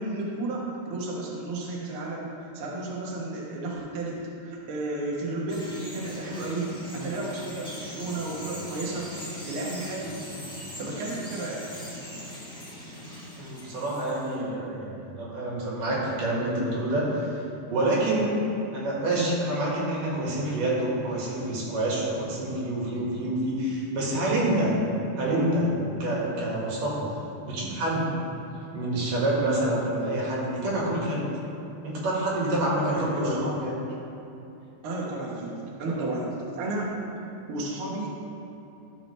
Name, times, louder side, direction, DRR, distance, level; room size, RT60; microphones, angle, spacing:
voice 1, 0.0-2.3 2.5-9.1 9.5-10.2 10.8-11.7 32.8-33.4 34.8-37.0 37.5-38.1, right 2 dB, 55° right, -3 dB, 1.6 m, -32 dB
Bird vocalization bird call bird song, 5.5-14.4, left 1 dB, 5° left, 0.5 m, -40 dB
voice 2, 13.4-17.3 17.7-18.3 18.7-24.7 25.2-25.7 26.0-27.1 27.4-28.1 28.7-31.3 31.8-33.7, right 1 dB, 85° right, -5 dB, 3.5 m, -27 dB
12.5 x 5.8 x 3.3 m, 2.9 s
omnidirectional pair, 3.7 m